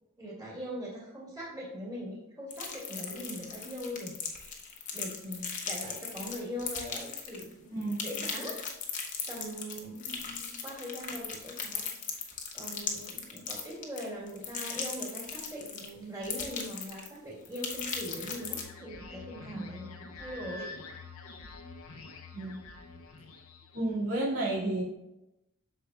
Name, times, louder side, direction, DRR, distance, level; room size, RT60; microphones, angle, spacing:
voice 1, 0.2-8.6 9.3-11.8 12.5-20.7, equal, 15° right, -6 dB, 2.1 m, -41 dB
sound 1, 2.5-7.5 7.8-15.9 16.2-17.2 17.4-18.6, left 6 dB, 35° left, 0.9 m, -38 dB
sound 2, 17.4-24.0, left 3 dB, 85° left, 0.8 m, -47 dB
voice 2, 23.7-24.8, right 2 dB, 85° right, -5 dB, 2.1 m, -31 dB
8.2 x 6.7 x 2.3 m, 0.92 s
head